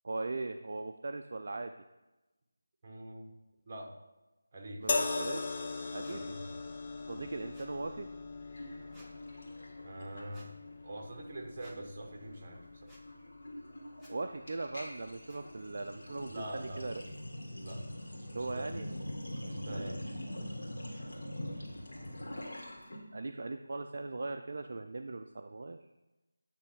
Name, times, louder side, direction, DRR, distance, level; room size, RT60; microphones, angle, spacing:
voice 1, 0.0-1.7 4.8-5.6 5.9-6.3 7.1-8.1 14.1-16.9 18.3-18.9 19.7-20.1 23.1-25.8, right 3 dB, 55° right, 6 dB, 0.4 m, -39 dB
voice 2, 2.8-3.3 3.7-4.0 4.5-4.9 6.1-6.6 7.1-7.2 9.8-13.0 16.3-16.9 17.6-17.9 18.2-18.8 19.4-20.1 20.4-20.5 20.9-21.1, right 1 dB, 35° right, 1 dB, 1.2 m, -45 dB
sound 1, 4.9-18.2 19.2-19.3, left 3 dB, 35° left, 0.6 m, -41 dB
sound 2, 6.0-6.2 7.5-7.7 8.9-9.1 10.3-10.5 11.6-11.8 12.9-13.0 14.0-14.1 15.3-15.4, equal, ahead, 0.9 m, -58 dB
Sink (filling or washing), 8.5-10.7 11.0-11.3 11.6-23.0, equal, 60° left, 1.9 m, -44 dB
9.0 x 3.2 x 4.8 m, 1.1 s
figure-of-eight pair, 165°, 0 cm